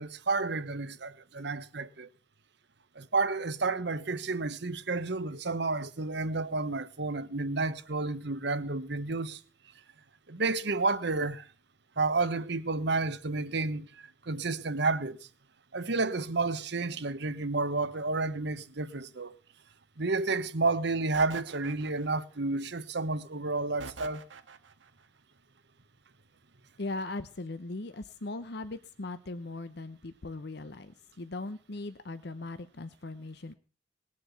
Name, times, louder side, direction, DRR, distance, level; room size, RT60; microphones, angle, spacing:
voice 1, 0.0-2.1 3.0-9.4 10.3-11.5 12.0-13.9 14.3-15.2 15.7-19.4 20.0-24.2, right 3 dB, 65° right, 1.1 m, -31 dB
Street Banger, 21.1-22.4 23.8-24.9, right 4 dB, 90° right, 1.6 m, -45 dB
voice 2, 26.8-33.5, left 2 dB, 60° left, 0.9 m, -39 dB
20.0 x 7.7 x 7.1 m
head